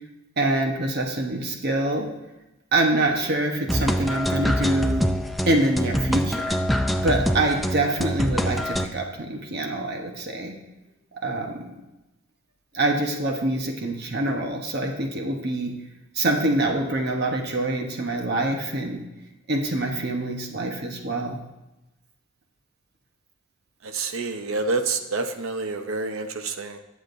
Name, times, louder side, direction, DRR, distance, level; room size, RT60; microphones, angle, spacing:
voice 1, 0.4-2.1 2.7-5.1 5.5-6.6 7.0-10.6 11.1-11.7 12.7-15.7 16.1-19.0 19.5-21.4, right 2 dB, 50° right, 2 dB, 1.1 m, -25 dB
sound 1, 3.7-8.9, equal, ahead, 0.4 m, -25 dB
voice 2, 23.8-26.8, right 3 dB, 70° right, 7 dB, 0.8 m, -28 dB
19.5 x 7.3 x 2.6 m, 1.0 s
head